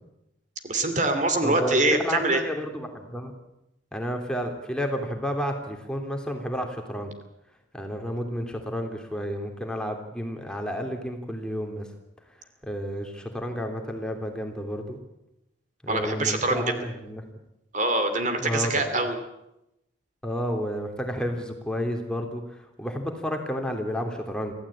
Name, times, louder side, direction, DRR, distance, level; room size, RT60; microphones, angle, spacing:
voice 1, 0.6-2.4 15.9-16.6 17.7-19.2, right 2 dB, 40° right, 7 dB, 2.6 m, -24 dB
voice 2, 1.4-3.3 3.9-7.1 7.7-11.9 12.6-15.0 15.8-17.2 18.4-18.8 20.2-24.5, equal, 5° left, 3 dB, 3.0 m, -31 dB
25.5 x 15.5 x 8.7 m, 0.88 s
head